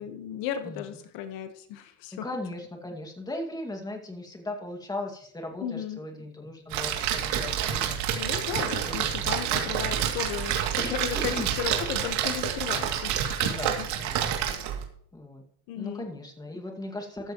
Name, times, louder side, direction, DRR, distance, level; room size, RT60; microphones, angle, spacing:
voice 1, 0.0-2.3 5.6-6.0 8.1-13.9 15.7-16.1, left 9 dB, 75° left, 8 dB, 1.5 m, -35 dB
voice 2, 2.2-8.0 8.5-9.7 10.8-11.5 13.4-14.3 15.1-15.4 15.7-17.3, left 1 dB, 10° left, 2 dB, 2.2 m, -38 dB
Splash splatter, 6.7-14.8, right 9 dB, 65° right, 2.8 m, -28 dB
14.5 x 13.0 x 3.1 m, 0.66 s
cardioid pair, 155°, 45 cm